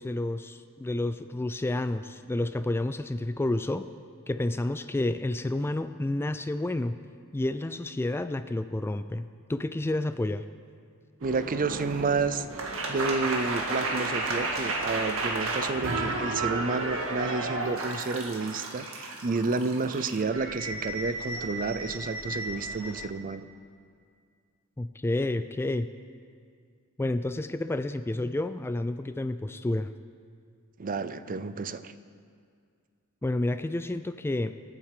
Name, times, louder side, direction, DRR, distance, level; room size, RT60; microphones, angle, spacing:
voice 1, 0.0-3.9 4.3-7.0 7.3-10.4 24.8-25.9 27.0-29.9 33.2-34.5, left 1 dB, 10° left, 11 dB, 0.3 m, -30 dB
voice 2, 11.2-23.5 30.8-31.9, right 4 dB, 40° right, 13 dB, 0.5 m, -30 dB
sound 1, 11.2-23.0, right 2 dB, 65° right, 1.8 m, -33 dB
26.5 x 8.9 x 4.9 m, 2.2 s
head